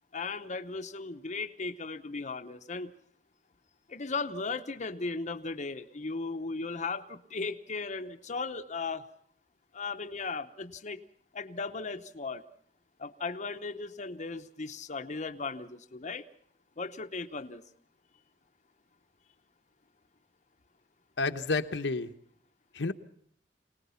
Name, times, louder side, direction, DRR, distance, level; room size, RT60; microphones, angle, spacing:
voice 1, 0.1-2.9 3.9-9.0 9.7-11.0 11.3-12.4 13.0-16.2 16.8-17.6, left 4 dB, 40° left, 5 dB, 0.9 m, -36 dB
voice 2, 21.2-22.1 22.7-22.9, left 3 dB, 80° left, 6 dB, 1.1 m, -30 dB
25.0 x 19.0 x 5.7 m, 0.65 s
head